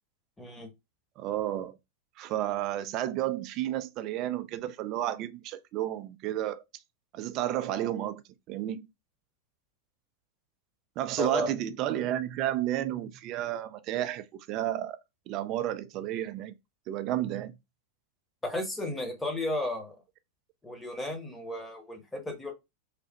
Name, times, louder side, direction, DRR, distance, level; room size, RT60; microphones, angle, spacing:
voice 1, 0.4-0.7 11.2-11.5 18.4-19.9 20.6-22.5, left 1 dB, 10° left, 1.0 m, -34 dB
voice 2, 1.2-1.8 2.2-6.6 7.1-8.2 8.5-8.9 11.0-15.0 15.3-16.5 16.9-17.6, right 13 dB, 40° right, 0.3 m, -31 dB
3.2 x 2.1 x 2.8 m
figure-of-eight pair, 90°, 0 cm